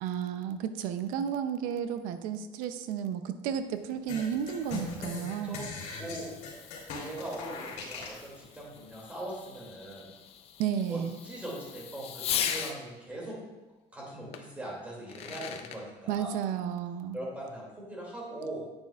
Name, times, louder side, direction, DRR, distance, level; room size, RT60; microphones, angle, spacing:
voice 1, 0.0-5.6 10.6-11.2 16.1-17.2, right 8 dB, 85° right, 10 dB, 0.6 m, -32 dB
Fireworks, 3.9-12.8 14.3-14.4 14.9-15.8, left 9 dB, 45° left, 0.6 m, -40 dB
sound 1, 4.1-8.2, left 4 dB, 65° left, 2.8 m, -39 dB
voice 2, 5.3-5.7 6.0-6.3 6.9-10.1 10.9-13.4 13.9-16.3 17.1-18.6, right 1 dB, 10° right, -3 dB, 2.6 m, -41 dB
9.4 x 8.9 x 2.4 m, 1.1 s
cardioid pair, 160°, 14 cm